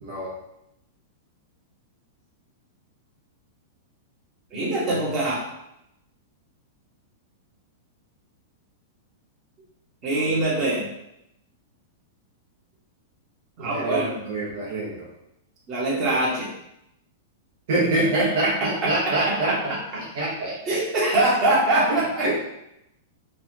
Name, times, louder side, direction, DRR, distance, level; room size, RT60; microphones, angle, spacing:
voice 1, 0.0-0.3 10.1-10.3 13.6-15.1 17.7-20.8 21.9-22.4, right 2 dB, 65° right, -5 dB, 1.0 m, -26 dB
voice 2, 4.5-5.4 10.0-10.8 13.6-14.2 15.7-16.5 18.2-19.6 20.7-22.4, right 2 dB, 30° right, -5 dB, 1.4 m, -23 dB
4.0 x 2.4 x 2.8 m, 0.84 s
hypercardioid pair, 135°, 0 cm